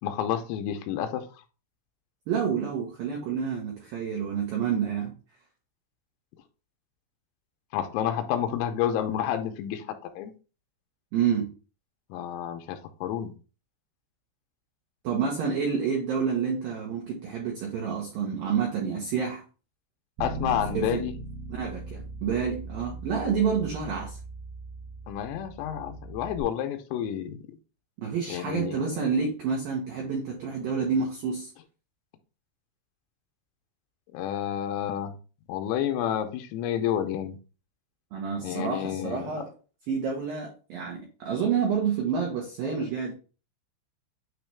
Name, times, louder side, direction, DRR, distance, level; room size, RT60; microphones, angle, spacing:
voice 1, 0.0-1.2 7.7-9.9 10.2-10.3 12.1-13.3 20.2-21.1 25.1-27.4 28.3-28.8 34.1-35.1 35.5-37.4 38.4-39.3, left 10 dB, 85° left, 6 dB, 3.3 m, -29 dB
voice 2, 2.3-5.1 11.1-11.5 15.0-19.4 20.7-21.0 21.5-24.2 28.0-31.5 38.1-39.5 39.9-43.1, right 6 dB, 90° right, -1 dB, 2.0 m, -28 dB
Bass guitar, 20.2-26.4, right 3 dB, 65° right, 2.4 m, -39 dB
9.1 x 3.1 x 3.3 m, 0.34 s
omnidirectional pair, 5.9 m